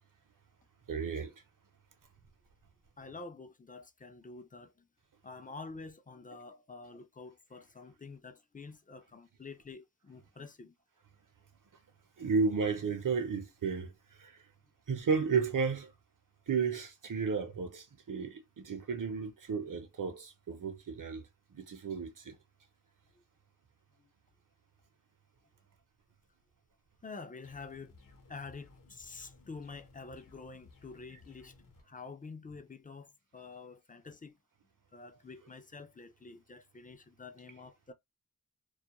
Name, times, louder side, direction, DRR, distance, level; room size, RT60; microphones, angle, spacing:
voice 1, 0.9-1.3 12.2-14.4 14.9-15.9 16.5-21.2 21.5-22.3, right 5 dB, 70° right, 0.7 m, -33 dB
voice 2, 3.0-4.9 5.2-10.7 24.0-24.1 27.0-31.5 31.8-34.4 34.9-37.9, left 4 dB, 25° left, 0.4 m, -48 dB
sound 1, 27.4-31.8, left 3 dB, 70° left, 0.8 m, -59 dB
2.3 x 2.1 x 2.9 m
wide cardioid pair, 45°, 34 cm